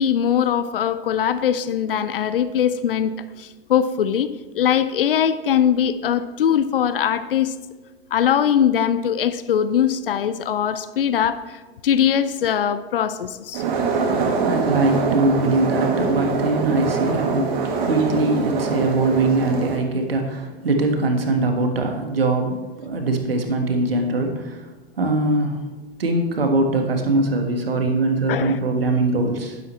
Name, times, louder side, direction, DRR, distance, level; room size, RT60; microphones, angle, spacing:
voice 1, 0.0-4.3 4.5-7.5 8.1-11.4 11.8-13.6 28.3-28.6, left 9 dB, 65° left, 14 dB, 0.6 m, -21 dB
sound 1, 13.5-19.8, right 4 dB, 55° right, 1.8 m, -23 dB
voice 2, 13.9-17.5 17.8-24.7 25.0-25.6 26.0-29.6, right 2 dB, 75° right, 4 dB, 1.6 m, -22 dB
11.0 x 11.0 x 3.1 m, 1.2 s
figure-of-eight pair, 95°, 30 cm